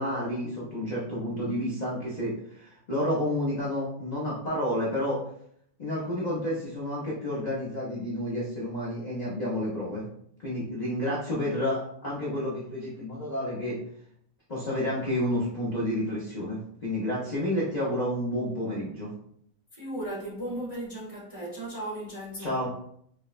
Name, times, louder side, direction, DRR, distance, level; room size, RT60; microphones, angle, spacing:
voice 1, 0.0-5.2 5.8-10.1 10.4-13.8 14.5-19.1 22.4-22.7, left 1 dB, 60° left, 0.4 m, -30 dB
voice 2, 19.7-22.7, right 1 dB, 35° right, 0.5 m, -36 dB
4.6 x 2.1 x 2.4 m
omnidirectional pair, 2.0 m